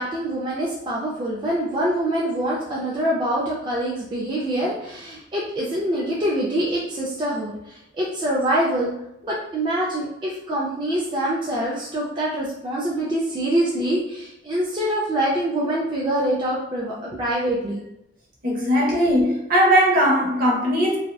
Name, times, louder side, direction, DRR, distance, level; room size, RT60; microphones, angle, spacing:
voice 1, 0.0-8.9 9.2-17.8, right 1 dB, 25° right, -6 dB, 0.3 m, -25 dB
voice 2, 18.4-21.0, equal, 45° right, -2 dB, 0.7 m, -19 dB
2.7 x 2.1 x 2.2 m, 0.83 s
head